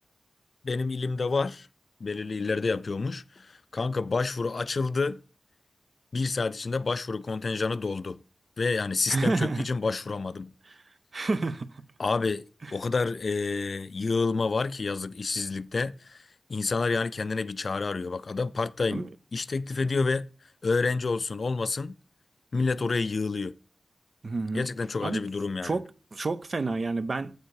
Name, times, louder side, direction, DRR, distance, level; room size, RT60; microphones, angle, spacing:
voice 1, 0.6-1.7 2.0-5.2 6.1-8.2 8.6-10.5 12.0-12.4 12.7-20.3 20.6-21.9 22.5-23.5 24.5-25.8, left 4 dB, 60° left, 0.3 m, -29 dB
voice 2, 9.1-9.7 11.1-11.7 18.9-19.1 24.2-24.7 25.0-25.2 25.6-27.3, right 3 dB, 55° right, 0.5 m, -29 dB
7.9 x 4.4 x 4.7 m
cardioid pair, 55°, 0 cm